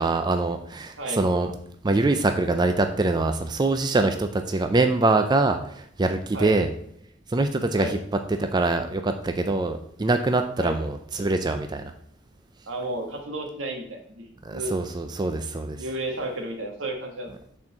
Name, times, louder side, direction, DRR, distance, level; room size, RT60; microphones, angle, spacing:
voice 1, 0.0-1.5 1.8-6.7 7.3-8.0 8.4-11.9 14.4-15.8, right 2 dB, 20° right, 7 dB, 0.4 m, -24 dB
voice 2, 12.7-14.7 15.8-17.3, right 1 dB, 80° right, 3 dB, 1.7 m, -32 dB
6.0 x 4.5 x 6.4 m, 0.67 s
head